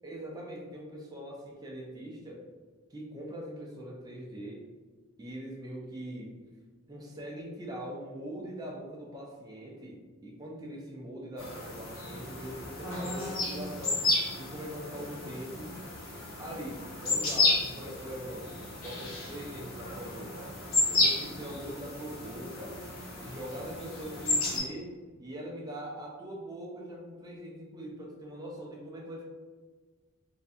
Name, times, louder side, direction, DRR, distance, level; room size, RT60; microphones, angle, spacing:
voice 1, 0.0-2.4 2.9-4.7 5.2-6.4 6.9-15.7 16.4-20.5 20.9-22.8 23.2-29.2, equal, 20° right, -2 dB, 0.4 m, -42 dB
sound 1, 11.4-24.6, left 2 dB, 90° left, 0.8 m, -32 dB
2.5 x 2.2 x 2.5 m, 1.4 s
head